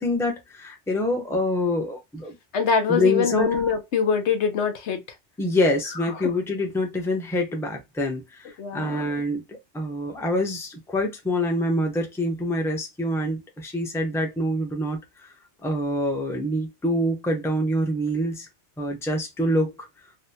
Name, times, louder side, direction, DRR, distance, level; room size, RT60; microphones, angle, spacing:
voice 1, 0.0-2.4 2.9-3.6 5.4-15.3 15.6-18.5 18.8-19.8, left 1 dB, 5° left, 0.7 m, -26 dB
voice 2, 2.5-5.0 8.6-9.0, left 6 dB, 80° left, 1.1 m, -23 dB
3.9 x 2.2 x 2.7 m
omnidirectional pair, 1.2 m